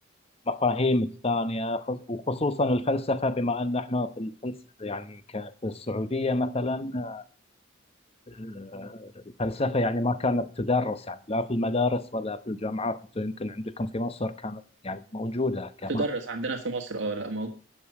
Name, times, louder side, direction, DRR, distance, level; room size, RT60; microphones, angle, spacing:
voice 1, 0.5-7.2 8.3-16.0, left 2 dB, 30° left, 0.9 m, -29 dB
voice 2, 15.9-17.5, right 3 dB, 75° right, 1.6 m, -30 dB
13.0 x 8.7 x 4.9 m
head